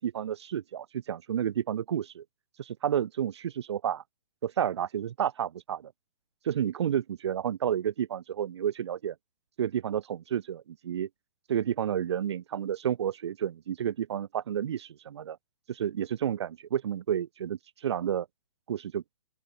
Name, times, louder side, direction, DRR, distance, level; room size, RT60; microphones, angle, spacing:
voice 1, 0.0-2.2 2.6-4.0 4.4-5.9 6.4-9.2 9.6-11.1 11.5-15.4 15.7-18.3 18.7-19.0, right 9 dB, 60° right, 5.6 m, -31 dB
open air
hypercardioid pair, 160°, 16 cm